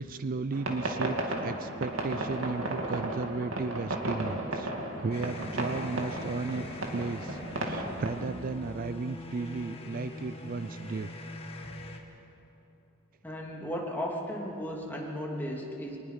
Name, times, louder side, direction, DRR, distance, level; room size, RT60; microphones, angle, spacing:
voice 1, 0.0-4.7 5.0-6.7 6.9-11.1, right 4 dB, 45° right, 13 dB, 0.4 m, -34 dB
sound 1, 0.5-8.1, right 1 dB, 70° right, 2.5 m, -34 dB
sound 2, 5.1-12.0, left 1 dB, 30° left, 1.7 m, -42 dB
voice 2, 13.2-16.0, equal, 10° left, -3 dB, 2.9 m, -35 dB
23.5 x 20.0 x 5.7 m, 2.9 s
head